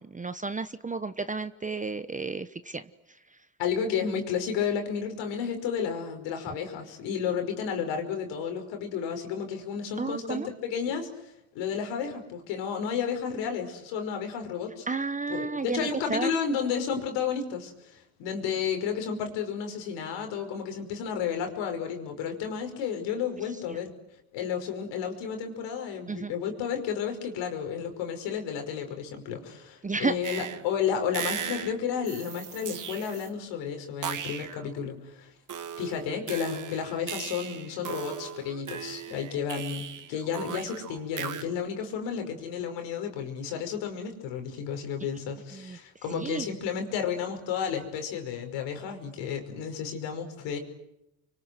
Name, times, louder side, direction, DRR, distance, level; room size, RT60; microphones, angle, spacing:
voice 1, 0.0-2.8 10.0-10.5 14.9-16.3 26.1-26.3 29.8-30.1 45.5-45.8 46.1-46.5, right 4 dB, 20° right, 12 dB, 1.0 m, -32 dB
voice 2, 3.6-14.9 15.3-23.9 24.3-35.3 35.8-50.6, left 7 dB, 80° left, 5 dB, 5.5 m, -32 dB
sound 1, 30.2-30.7 31.1-31.8 32.7-33.3 34.0-34.7 35.5-41.4, right 8 dB, 45° right, 2.3 m, -37 dB
sound 2, 32.0-33.3, right 12 dB, 90° right, 4.2 m, -47 dB
29.5 x 24.0 x 8.0 m, 0.85 s
supercardioid pair, 85°, 43 cm